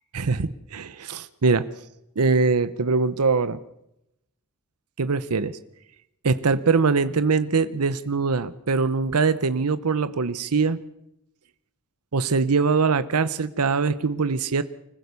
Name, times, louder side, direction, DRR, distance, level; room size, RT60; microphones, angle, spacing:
voice 1, 0.1-1.7 2.2-3.6 5.0-5.6 6.2-10.8 12.1-14.6, right 4 dB, 85° right, 14 dB, 0.8 m, -22 dB
25.0 x 15.5 x 6.9 m, 0.84 s
head